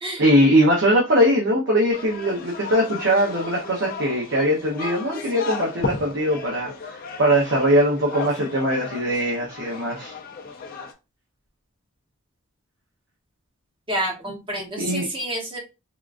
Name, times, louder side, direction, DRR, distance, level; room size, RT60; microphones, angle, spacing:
voice 1, 0.2-10.1 14.8-15.1, equal, 55° right, -2 dB, 0.7 m, -21 dB
sound 1, 1.9-10.9, left 4 dB, 45° left, 0.4 m, -35 dB
voice 2, 13.9-15.6, right 1 dB, 25° right, 0 dB, 0.9 m, -28 dB
3.6 x 2.3 x 2.4 m, 0.27 s
head